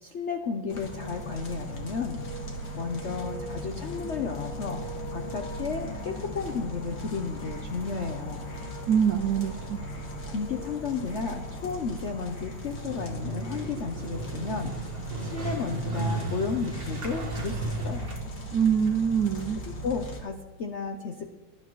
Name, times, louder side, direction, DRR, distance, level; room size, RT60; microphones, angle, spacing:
voice 1, 0.0-2.2 2.7-8.4 10.3-14.8 15.2-18.1 19.6-21.3, left 5 dB, 70° left, 5 dB, 0.6 m, -33 dB
sound 1, 0.7-20.2, equal, 50° left, 2.0 m, -38 dB
voice 2, 8.9-9.8 18.5-19.6, right 7 dB, 75° right, 8 dB, 0.8 m, -24 dB
Motorcycle, 12.7-19.5, right 2 dB, 30° right, 1.5 m, -35 dB
18.5 x 12.0 x 3.1 m, 1.1 s
omnidirectional pair, 2.2 m